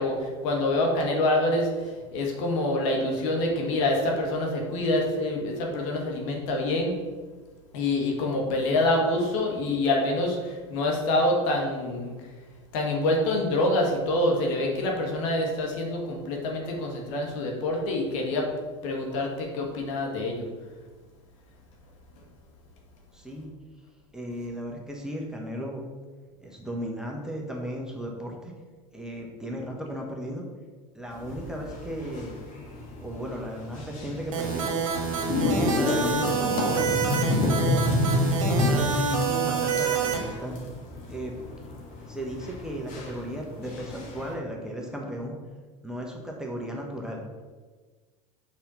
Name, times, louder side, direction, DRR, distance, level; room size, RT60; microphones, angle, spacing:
voice 1, 0.0-7.0 7.7-12.1 12.7-18.5 18.8-20.5, left 1 dB, 70° left, 0 dB, 1.7 m, -26 dB
voice 2, 23.1-23.5 24.1-25.8 26.4-28.5 28.9-30.4 30.9-32.4 33.0-34.7 35.2-37.9 38.5-40.6 41.1-41.3 42.1-45.3 45.8-47.2, equal, 5° right, -1 dB, 1.3 m, -35 dB
sound 1, 31.1-44.3, left 2 dB, 50° left, 2.0 m, -30 dB
sound 2, 34.3-40.2, right 6 dB, 80° right, 1.5 m, -27 dB
5.9 x 4.3 x 5.5 m, 1.4 s
hypercardioid pair, 95°, 17 cm